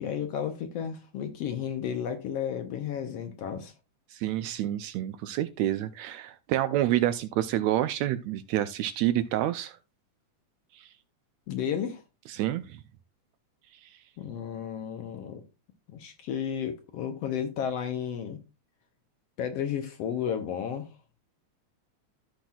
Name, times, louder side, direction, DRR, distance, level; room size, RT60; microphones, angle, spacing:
voice 1, 0.0-3.7 11.5-12.0 14.2-15.4 15.9-18.4 19.4-20.9, left 8 dB, 70° left, 1.7 m, -33 dB
voice 2, 4.1-9.8 10.7-10.9 12.3-12.8 13.8-14.0, right 13 dB, 80° right, 1.7 m, -28 dB
14.0 x 5.9 x 2.3 m
omnidirectional pair, 3.4 m